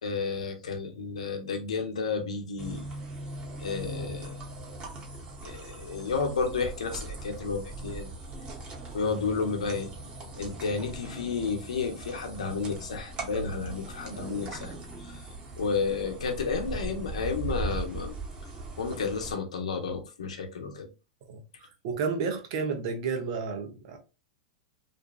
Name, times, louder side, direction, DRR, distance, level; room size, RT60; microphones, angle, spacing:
voice 1, 0.0-2.9 3.6-4.4 5.4-8.1 8.9-9.9 10.4-14.7 15.0-15.2 15.6-18.2 18.8-20.9, left 5 dB, 80° left, 0.7 m, -31 dB
sound 1, 2.6-19.3, right 2 dB, 30° right, 1.0 m, -39 dB
voice 2, 21.8-24.0, right 5 dB, 55° right, 0.7 m, -31 dB
2.6 x 2.3 x 2.3 m
hypercardioid pair, 100°, 3 cm